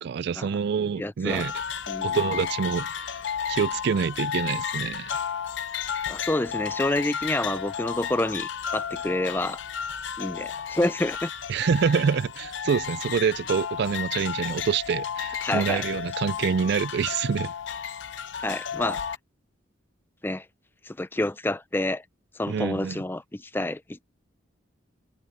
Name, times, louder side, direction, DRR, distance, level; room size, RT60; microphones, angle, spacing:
voice 1, 0.0-1.5 2.0-3.2 3.5-5.1 11.5-17.5 22.5-23.0, right 6 dB, 55° right, 0.3 m, -26 dB
voice 2, 1.0-1.4 1.9-2.2 6.1-9.6 10.2-11.3 15.4-15.8 18.4-19.0 20.2-20.4 20.9-22.0 22.4-24.0, left 1 dB, 10° left, 0.5 m, -28 dB
sound 1, 1.3-19.2, left 8 dB, 65° left, 0.8 m, -33 dB
head